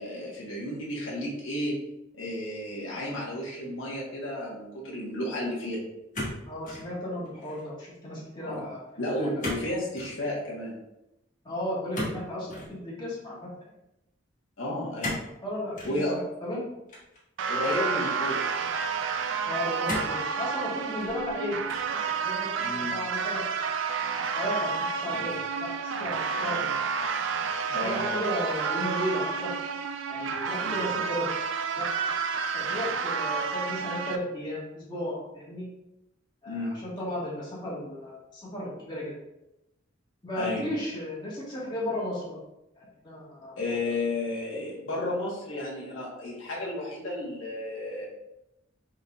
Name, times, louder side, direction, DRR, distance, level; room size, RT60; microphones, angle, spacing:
voice 1, 0.0-1.8 2.1-5.8 8.4-8.7 9.0-10.8 14.6-15.2 15.8-16.2 17.5-18.5 22.6-23.0 25.1-25.2 27.7-28.1 30.6-30.8 36.5-36.8 40.3-40.7 43.6-48.1, left 1 dB, 85° left, -4 dB, 1.2 m, -32 dB
sound 1, 6.1-6.9 7.2-7.7 9.4-9.7 9.9-10.2 11.9-12.7 15.0-15.3 15.7-16.0 16.9-17.7 18.4-18.5 19.8-20.2 20.8-21.3 21.7-22.0, left 1 dB, 40° left, 1.5 m, -35 dB
voice 2, 6.5-8.8 9.2-9.4 11.4-13.5 15.4-16.6 19.4-23.7 24.3-26.8 27.7-29.5 30.1-31.3 31.8-31.9 32.5-35.7 36.4-39.1 40.2-42.4 42.8-43.6, left 1 dB, 25° left, -7 dB, 1.5 m, -35 dB
sound 2, 17.4-34.2, right 5 dB, 70° right, 0.4 m, -30 dB
4.6 x 4.1 x 2.3 m, 0.88 s
head